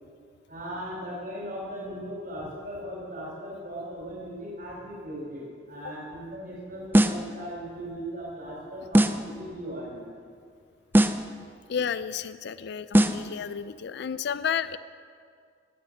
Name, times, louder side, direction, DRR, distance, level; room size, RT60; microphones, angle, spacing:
voice 1, 0.5-10.2, equal, 50° right, -5 dB, 3.9 m, -38 dB
sound 1, 6.9-7.3 8.9-9.3 10.9-11.3 12.9-13.3, right 1 dB, 10° right, 0.5 m, -21 dB
voice 2, 11.7-14.8, left 7 dB, 65° left, 14 dB, 0.4 m, -31 dB
18.0 x 9.2 x 6.4 m, 2.2 s
head